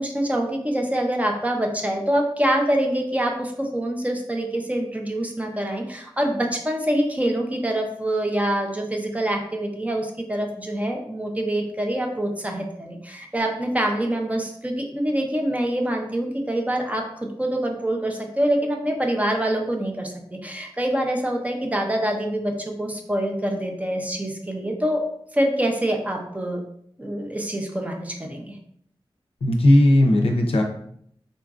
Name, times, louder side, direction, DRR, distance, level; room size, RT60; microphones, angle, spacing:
voice 1, 0.0-17.1 17.4-25.1 25.3-26.6 27.0-28.6, right 1 dB, 15° right, 2 dB, 0.5 m, -25 dB
voice 2, 29.4-30.6, left 1 dB, 80° left, 2 dB, 0.5 m, -16 dB
3.9 x 2.5 x 2.3 m, 0.68 s
wide cardioid pair, 95°, 10 cm